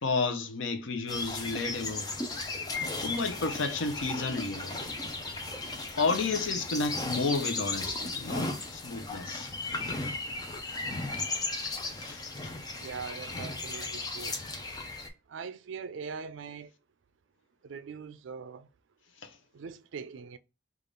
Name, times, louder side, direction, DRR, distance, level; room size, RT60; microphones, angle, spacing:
voice 1, 0.0-2.1 3.0-4.9 5.9-9.5 12.0-12.5 19.2-19.4, left 3 dB, 90° left, 0.7 m, -32 dB
sound 1, 1.1-15.1, left 2 dB, 20° left, 0.5 m, -36 dB
voice 2, 12.8-14.4 15.3-16.7 17.6-18.7 19.5-20.4, right 5 dB, 85° right, 0.4 m, -41 dB
3.3 x 2.5 x 3.8 m
head